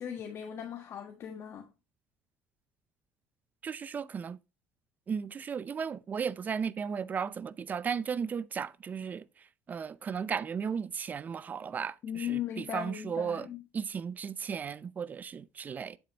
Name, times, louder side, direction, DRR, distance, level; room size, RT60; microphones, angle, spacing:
voice 1, 0.0-1.7 12.0-13.6, left 9 dB, 50° left, 1.4 m, -38 dB
voice 2, 3.6-4.4 5.1-9.2 9.7-13.5 13.7-16.0, right 6 dB, 30° right, 0.5 m, -35 dB
8.3 x 7.9 x 2.9 m
cardioid pair, 110°, 6 cm